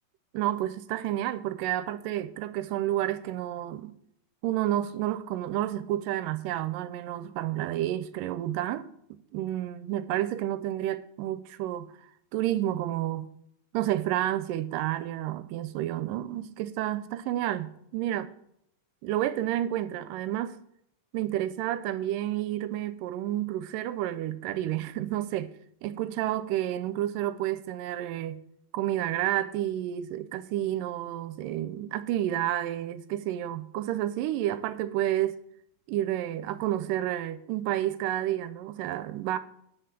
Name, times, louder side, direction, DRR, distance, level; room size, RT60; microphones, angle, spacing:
voice 1, 0.3-4.0 4.4-11.9 12.3-13.3 13.7-18.3 19.0-20.6 21.1-25.5 25.8-28.4 28.7-35.4 35.9-39.4, right 13 dB, 85° right, 2.2 m, -30 dB
10.0 x 6.3 x 7.3 m
omnidirectional pair, 3.9 m